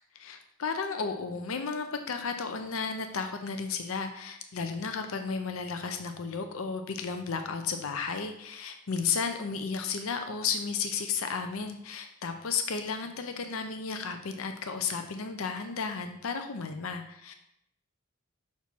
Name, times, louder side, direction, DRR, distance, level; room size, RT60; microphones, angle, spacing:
voice 1, 0.2-17.3, left 5 dB, 85° left, 7 dB, 0.6 m, -33 dB
5.9 x 4.3 x 6.0 m, 0.77 s
head